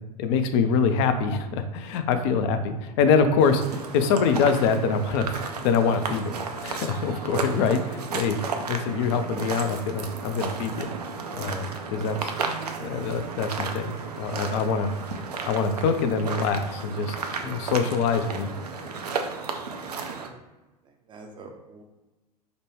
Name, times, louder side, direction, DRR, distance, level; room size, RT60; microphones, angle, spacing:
voice 1, 0.2-5.4 5.6-6.3 6.6-8.4 8.7-10.9 11.3-12.3 12.8-14.9 15.5-17.2 17.4-18.5, left 5 dB, 45° left, 9 dB, 0.5 m, -24 dB
sound 1, 3.4-20.3, right 4 dB, 75° right, 0.5 m, -33 dB
voice 2, 20.8-21.8, right 3 dB, 25° right, 3 dB, 0.5 m, -47 dB
5.0 x 2.2 x 3.1 m, 1.1 s
figure-of-eight pair, 85°, 20 cm